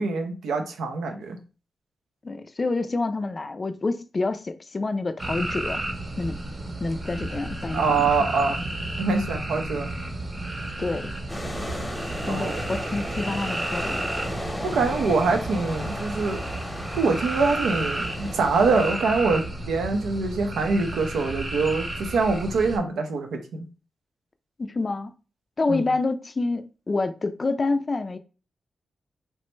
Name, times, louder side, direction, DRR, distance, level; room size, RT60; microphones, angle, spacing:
voice 1, 0.0-1.4 7.7-8.6 9.0-9.9 12.3-12.6 14.6-16.4 17.0-23.6 25.7-25.8, right 4 dB, 90° right, 0.5 m, -24 dB
voice 2, 2.2-5.8 6.2-6.4 6.8-8.0 10.8-11.1 12.3-14.0 24.6-25.1 25.6-28.2, left 3 dB, 40° left, 0.3 m, -27 dB
sound 1, 5.2-22.8, right 1 dB, 45° right, 0.8 m, -32 dB
sound 2, 11.3-19.0, equal, 10° left, 0.8 m, -35 dB
3.0 x 2.1 x 3.1 m
cardioid pair, 55°, 0 cm